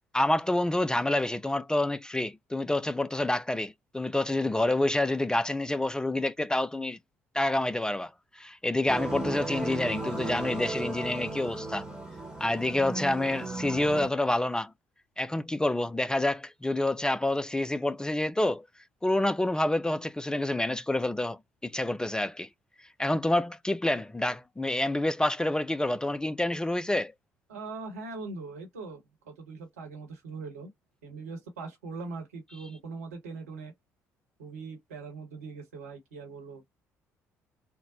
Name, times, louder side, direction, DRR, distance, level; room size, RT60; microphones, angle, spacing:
voice 1, 0.1-7.0 7.3-11.8 12.4-14.7 15.2-18.6 19.0-22.5 23.0-27.1, left 1 dB, 10° left, 0.3 m, -28 dB
sound 1, 8.9-14.1, right 2 dB, 10° right, 1.2 m, -35 dB
voice 2, 27.5-30.7 31.0-33.7 34.4-36.6, right 4 dB, 80° right, 1.1 m, -41 dB
3.8 x 2.0 x 2.6 m
figure-of-eight pair, 50°, 8 cm